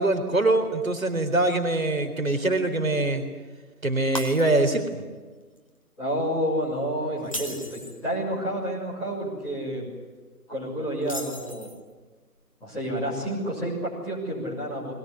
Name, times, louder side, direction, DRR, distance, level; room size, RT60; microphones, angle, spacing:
voice 1, 0.0-3.2 3.8-5.0, right 2 dB, 60° right, 6 dB, 4.1 m, -23 dB
Shatter, 4.1-4.9 5.3-5.6 7.2-8.0 11.0-11.9, equal, 20° left, 1.2 m, -37 dB
voice 2, 6.0-9.9 10.5-11.7 12.6-14.9, equal, ahead, -15 dB, 2.5 m, -29 dB
22.0 x 19.0 x 9.9 m, 1.3 s
figure-of-eight pair, 165°, 46 cm